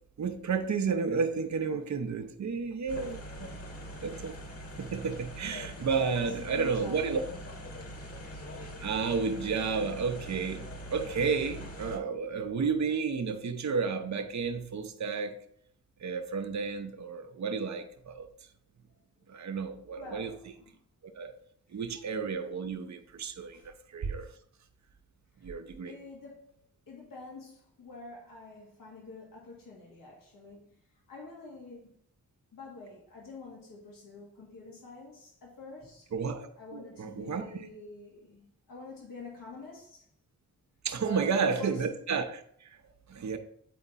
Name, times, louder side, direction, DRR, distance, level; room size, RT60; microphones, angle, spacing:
voice 1, 0.2-3.6 4.0-4.4 4.8-7.2 8.8-15.4 16.0-18.3 19.3-20.3 21.2-21.3 21.7-24.3 25.4-25.9 36.1-37.4 40.8-42.4 43.1-43.4, right 5 dB, 60° right, 0.9 m, -32 dB
sound 1, 2.9-12.0, equal, 45° left, 1.8 m, -43 dB
voice 2, 6.1-7.1 19.9-20.8 21.7-21.9 23.5-23.7 25.4-25.5 25.8-26.5 26.9-30.7 31.1-31.9 32.5-36.1 36.6-40.1 41.0-41.8, left 3 dB, 85° left, 2.3 m, -47 dB
8.4 x 4.4 x 4.1 m
cardioid pair, 50°, 33 cm